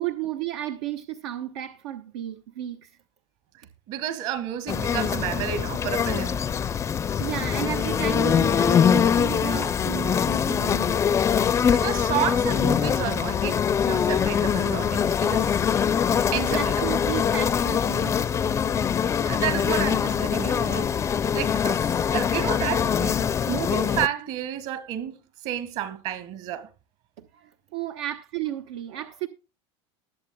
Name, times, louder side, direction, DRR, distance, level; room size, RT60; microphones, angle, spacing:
voice 1, 0.0-2.9 7.2-11.0 12.8-12.9 16.5-18.1 27.2-29.3, right 13 dB, 80° right, 1.1 m, -33 dB
voice 2, 3.9-6.4 11.7-15.7 16.3-16.7 19.3-20.9 21.3-25.2 25.4-26.7, right 10 dB, 55° right, 1.9 m, -31 dB
sound 1, 4.7-24.1, left 7 dB, 20° left, 0.5 m, -23 dB
20.5 x 7.4 x 2.2 m
supercardioid pair, 140°, 14 cm